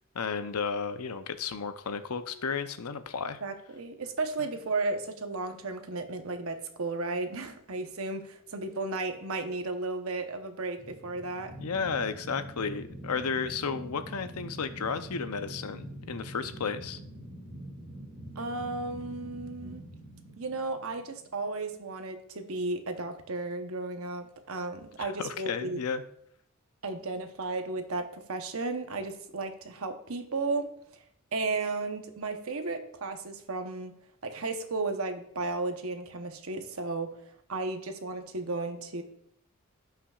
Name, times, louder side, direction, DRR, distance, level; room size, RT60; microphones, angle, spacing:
voice 1, 0.1-3.4 11.6-17.0 25.0-26.0, left 5 dB, 85° left, 10 dB, 0.6 m, -33 dB
voice 2, 3.4-11.5 18.4-19.8 20.4-25.8 26.8-30.7 31.3-33.9 34.2-37.1 37.5-39.0, right 3 dB, 70° right, 7 dB, 0.9 m, -34 dB
sound 1, 10.8-21.7, right 1 dB, 35° right, 3.0 m, -45 dB
16.5 x 5.8 x 2.4 m, 0.71 s
head